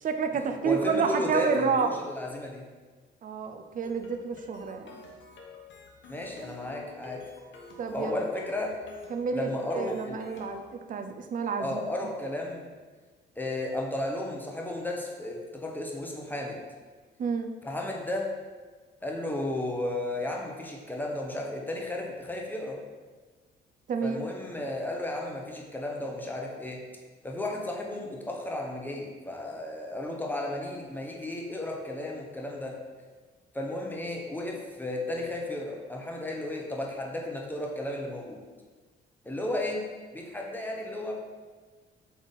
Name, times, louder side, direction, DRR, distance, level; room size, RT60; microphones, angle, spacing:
voice 1, 0.0-1.9 3.2-5.0 7.8-8.2 9.1-11.8 17.2-17.5 23.9-24.2, right 5 dB, 45° right, 7 dB, 0.4 m, -29 dB
voice 2, 0.6-2.7 6.1-7.3 7.9-8.8 9.3-10.3 11.6-12.7 13.4-16.6 17.6-18.3 19.0-22.8 24.0-26.9 27.2-32.8 33.5-38.4 39.2-41.1, left 1 dB, 10° left, 0 dB, 0.8 m, -34 dB
sound 1, 3.8-10.7, left 3 dB, 70° left, 0.9 m, -48 dB
3.6 x 3.4 x 4.0 m, 1.4 s
cardioid pair, 90°, 20 cm